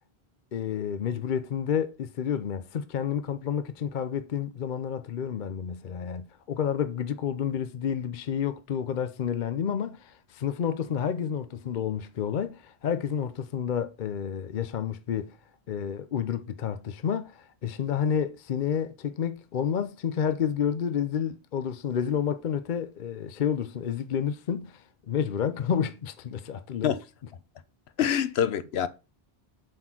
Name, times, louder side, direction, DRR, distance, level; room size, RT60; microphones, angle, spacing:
voice 1, 0.5-15.4 15.7-26.9, left 8 dB, 55° left, 0.7 m, -30 dB
voice 2, 28.0-28.9, left 9 dB, 85° left, 1.0 m, -25 dB
7.7 x 4.3 x 5.9 m
omnidirectional pair, 1.0 m